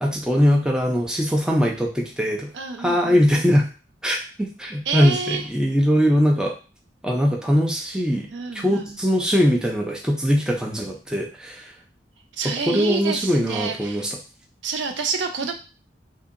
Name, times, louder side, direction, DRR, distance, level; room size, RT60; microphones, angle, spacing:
voice 1, 0.0-2.5 2.8-3.6 4.0-6.5 7.0-8.3 8.5-11.7 12.7-14.2, equal, 5° right, -1 dB, 0.4 m, -21 dB
voice 2, 2.5-3.3 4.9-5.5 8.3-9.0 12.4-14.1 14.6-15.5, right 5 dB, 85° right, 5 dB, 0.5 m, -28 dB
2.7 x 2.7 x 2.5 m, 0.34 s
head